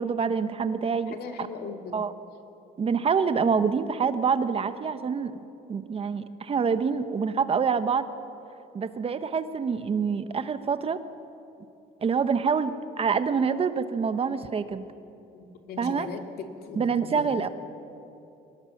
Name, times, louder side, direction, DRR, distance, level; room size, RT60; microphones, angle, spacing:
voice 1, 0.0-1.5 1.9-2.1 2.8-5.4 5.7-8.1 8.7-11.0 12.0-14.8 15.8-16.1 16.8-17.5, right 6 dB, 35° right, 11 dB, 1.0 m, -26 dB
voice 2, 1.1-2.0 15.3-17.4, left 4 dB, 65° left, 4 dB, 2.3 m, -39 dB
23.0 x 19.5 x 7.2 m, 2.8 s
cardioid pair, 110°, 17 cm